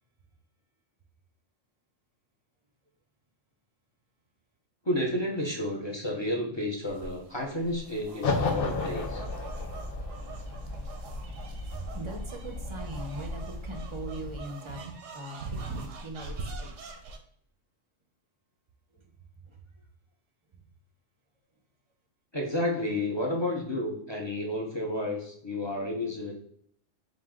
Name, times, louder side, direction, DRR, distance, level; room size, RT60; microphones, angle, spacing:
voice 1, 4.9-9.2 22.3-26.3, left 1 dB, 30° left, 0 dB, 0.6 m, -31 dB
sound 1, 6.8-17.2, right 3 dB, 85° right, 1.1 m, -43 dB
sound 2, 8.2-14.4, left 3 dB, 70° left, 1.0 m, -34 dB
voice 2, 11.4-16.7 18.9-19.1 19.4-19.6 20.5-20.6, right 1 dB, 30° right, 4 dB, 0.6 m, -41 dB
4.8 x 2.6 x 3.6 m, 0.65 s
omnidirectional pair, 1.3 m